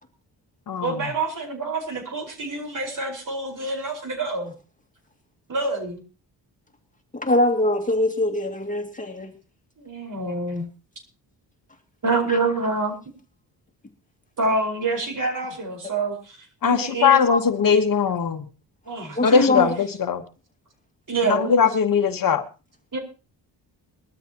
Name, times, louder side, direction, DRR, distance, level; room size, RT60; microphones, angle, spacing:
voice 1, 0.8-4.5 5.5-6.0 9.8-10.6 12.0-12.9 14.4-16.4 16.6-17.2 18.9-19.5 21.1-21.5 22.9-23.0, right 3 dB, 45° right, 4.9 m, -26 dB
voice 2, 7.1-9.3 12.3-12.4 16.6-17.4 17.7-17.8 19.2-19.7, left 2 dB, 20° left, 2.2 m, -23 dB
voice 3, 16.6-18.5 19.2-20.2 21.3-22.4, left 6 dB, 50° left, 1.3 m, -20 dB
21.0 x 13.0 x 2.9 m
cardioid pair, 85°, 43 cm